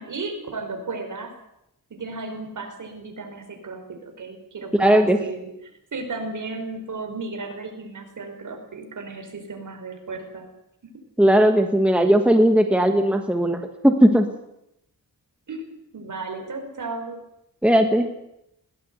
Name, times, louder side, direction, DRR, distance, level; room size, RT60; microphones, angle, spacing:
voice 1, 0.0-1.3 1.9-5.5 5.9-10.5 15.5-17.2, right 3 dB, 55° right, 5 dB, 5.4 m, -34 dB
voice 2, 4.8-5.2 11.2-14.3 17.6-18.1, equal, 5° right, 5 dB, 1.5 m, -17 dB
21.0 x 18.5 x 9.5 m, 0.82 s
wide cardioid pair, 175°, 37 cm